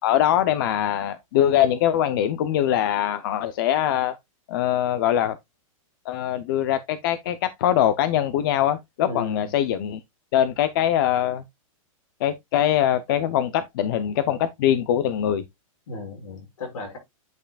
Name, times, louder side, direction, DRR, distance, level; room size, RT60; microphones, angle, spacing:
voice 1, 0.0-4.2 4.5-5.4 6.1-10.0 10.3-11.4 12.2-15.4, left 11 dB, 40° left, 0.6 m, -22 dB
voice 2, 9.0-9.5 15.9-17.0, left 3 dB, 70° left, 5.8 m, -35 dB
9.0 x 5.7 x 2.3 m
supercardioid pair, 170°, 18 cm